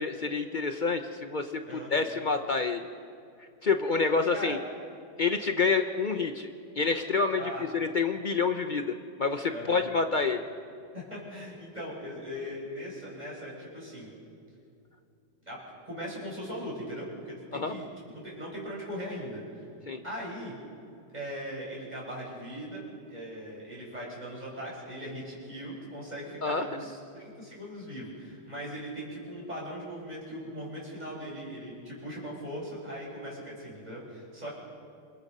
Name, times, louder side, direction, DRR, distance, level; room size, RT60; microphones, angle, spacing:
voice 1, 0.0-2.9 3.4-4.6 5.2-6.5 6.8-10.4 17.5-17.7 19.9-20.0 26.4-26.7, left 4 dB, 80° left, 7 dB, 0.4 m, -28 dB
voice 2, 7.3-7.6 9.5-9.8 10.9-14.1 15.4-17.9 18.1-19.7 20.0-20.5 21.1-34.5, equal, 20° right, -5 dB, 7.8 m, -39 dB
28.0 x 24.0 x 5.5 m, 2.5 s
omnidirectional pair, 2.2 m